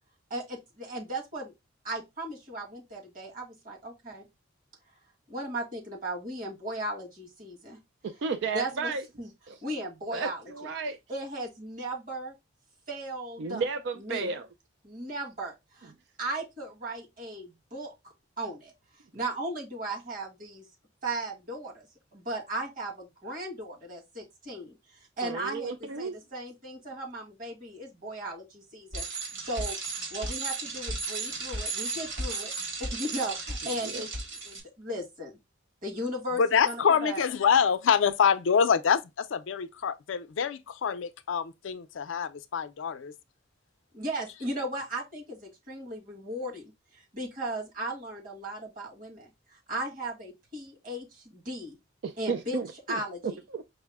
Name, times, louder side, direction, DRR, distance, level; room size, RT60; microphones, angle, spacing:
voice 1, 0.3-1.5 1.8-4.3 5.3-7.8 8.5-8.9 9.2-9.3 9.6-10.7 11.1-12.3 12.9-13.6 14.0-14.3 14.8-15.9 16.2-17.9 18.4-18.7 19.1-20.6 21.0-21.9 22.1-29.0 29.4-29.8 30.1-32.5 32.8-34.1 34.4-35.4 35.8-37.2 43.9-51.8 52.2-52.6 52.9-53.2, right 1 dB, 45° right, 1.8 m, -36 dB
voice 2, 8.0-9.0 9.5-9.6 10.1-11.0 13.4-14.5 25.2-26.2 33.8-34.0 52.0-53.6, right 4 dB, 60° right, 0.4 m, -33 dB
Bicycle, 28.9-34.6, right 3 dB, 80° right, 1.9 m, -34 dB
voice 3, 36.4-43.1, left 7 dB, 80° left, 0.4 m, -26 dB
5.4 x 2.0 x 3.4 m
head